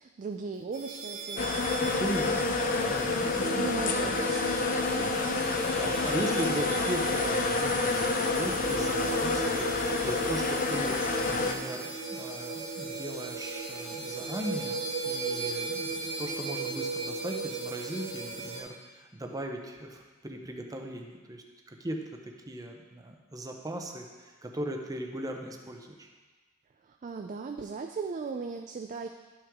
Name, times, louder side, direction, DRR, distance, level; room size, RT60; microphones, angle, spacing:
voice 1, 0.0-1.7 2.3-2.8 3.6-4.6 4.9-5.3 26.8-29.1, right 4 dB, 35° right, 5 dB, 0.3 m, -38 dB
sound 1, 0.7-18.6, right 3 dB, 60° right, 1.6 m, -37 dB
sound 2, 1.4-11.5, left 3 dB, 40° left, 0.6 m, -28 dB
voice 2, 1.8-3.5 5.8-26.1, right 1 dB, 15° right, 2 dB, 0.7 m, -38 dB
11.5 x 5.9 x 3.6 m, 1.3 s
head